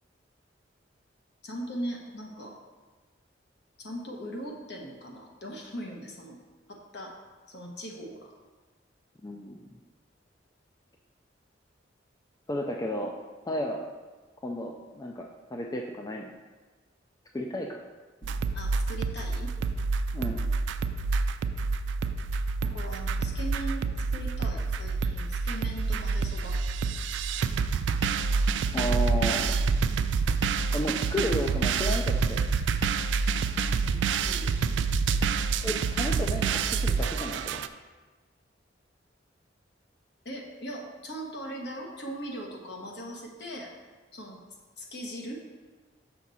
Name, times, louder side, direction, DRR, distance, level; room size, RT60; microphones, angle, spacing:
voice 1, 1.4-2.6 3.8-6.4 6.7-7.1 7.5-8.3 18.5-19.5 22.6-23.9 24.1-26.6 29.8-30.1 33.8-35.2 40.2-43.7 44.1-44.4 44.8-45.4, right 1 dB, 60° left, 0 dB, 1.2 m, -40 dB
voice 2, 9.2-9.6 12.5-13.1 13.5-13.9 14.4-16.3 17.3-17.8 20.1-20.5 28.7-29.6 30.7-32.4 35.6-37.6, equal, 20° left, 2 dB, 0.4 m, -33 dB
sound 1, 18.2-37.7, right 4 dB, 70° right, 0.3 m, -27 dB
6.0 x 5.9 x 4.1 m, 1.3 s
head